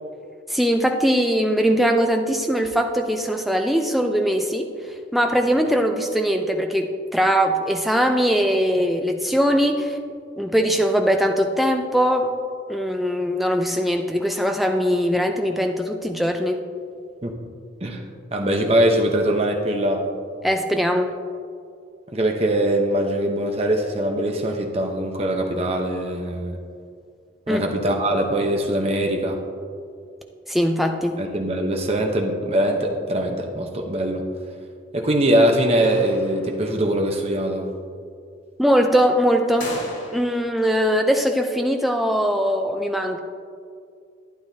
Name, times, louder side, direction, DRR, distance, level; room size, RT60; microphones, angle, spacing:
voice 1, 0.5-4.7 5.1-10.0 10.4-12.3 12.7-16.6 20.4-21.1 27.5-27.7 30.5-31.2 38.6-39.7 40.1-43.2, equal, ahead, 4 dB, 0.5 m, -21 dB
voice 2, 18.3-20.1 22.1-26.6 27.5-29.4 31.2-34.3 34.9-37.7, right 1 dB, 30° right, 2 dB, 0.9 m, -22 dB
sound 1, 35.8-36.8 39.6-40.6, left 1 dB, 80° left, 2.3 m, -36 dB
12.0 x 9.5 x 2.8 m, 2.2 s
head